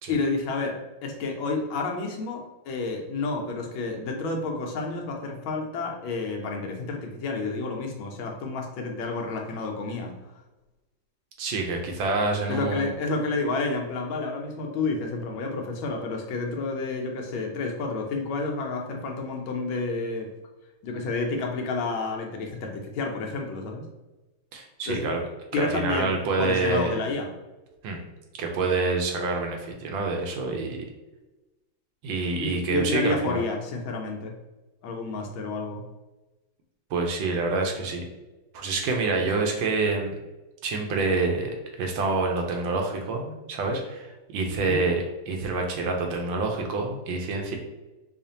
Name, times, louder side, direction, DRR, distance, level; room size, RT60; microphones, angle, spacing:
voice 1, 0.1-10.1 12.5-20.3 20.8-23.8 24.9-25.2 25.5-26.1 26.4-27.3 32.4-34.4 34.8-35.8 44.7-44.8, left 3 dB, 80° left, 2 dB, 1.4 m, -30 dB
voice 2, 11.4-12.9 24.5-25.2 25.6-27.0 27.8-28.0 28.4-30.9 32.0-33.4 36.9-38.0 38.5-40.2 40.6-47.6, right 3 dB, 75° right, 2 dB, 1.4 m, -27 dB
5.0 x 2.4 x 2.7 m, 1.1 s
omnidirectional pair, 2.2 m